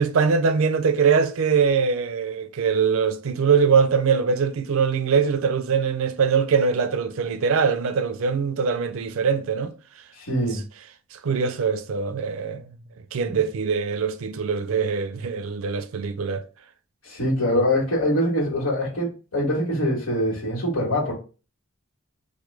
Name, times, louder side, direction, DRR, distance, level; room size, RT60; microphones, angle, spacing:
voice 1, 0.0-9.7 10.4-10.5 11.1-12.7 13.1-16.5, right 5 dB, 80° right, 0.4 m, -22 dB
voice 2, 10.1-10.6 17.0-21.1, equal, 75° left, 1.2 m, -23 dB
3.1 x 2.2 x 3.2 m
head